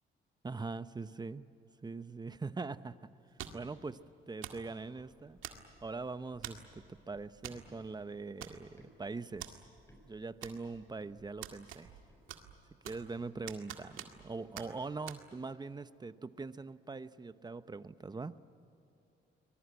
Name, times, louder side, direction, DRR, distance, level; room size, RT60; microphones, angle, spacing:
voice 1, 0.4-1.5 1.8-3.1 3.5-4.0 4.3-5.4 5.8-9.6 10.1-11.9 12.8-18.3, right 3 dB, 20° right, 13 dB, 0.8 m, -42 dB
sound 1, 3.4-3.7 4.4-4.7 5.4-5.9 6.4-6.7 7.4-7.6 7.9-8.0 8.4-8.9 9.4-9.5 10.4-10.9 11.4-12.0 12.3-13.1 13.5-14.3 14.6-14.7 15.1-15.2, right 11 dB, 90° right, 2.0 m, -46 dB
sound 2, 5.4-8.9 9.3-13.3, left 1 dB, 15° left, 6.4 m, -64 dB
23.5 x 20.5 x 9.6 m, 2.9 s
cardioid pair, 90°, 20 cm